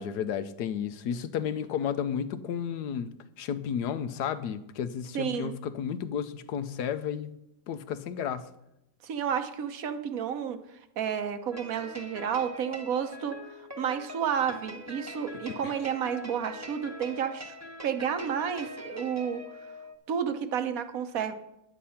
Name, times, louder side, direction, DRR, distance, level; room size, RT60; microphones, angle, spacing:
voice 1, 0.0-7.4 7.7-8.5 15.5-15.7, left 8 dB, 75° left, 12 dB, 1.2 m, -32 dB
voice 2, 5.1-5.5 9.0-10.6 11.0-13.4 13.8-17.5 17.8-19.4 20.1-21.3, right 8 dB, 60° right, 9 dB, 1.2 m, -31 dB
sound 1, 11.5-19.9, left 1 dB, 10° right, 1.0 m, -43 dB
10.0 x 8.5 x 5.6 m, 0.85 s
omnidirectional pair, 1.8 m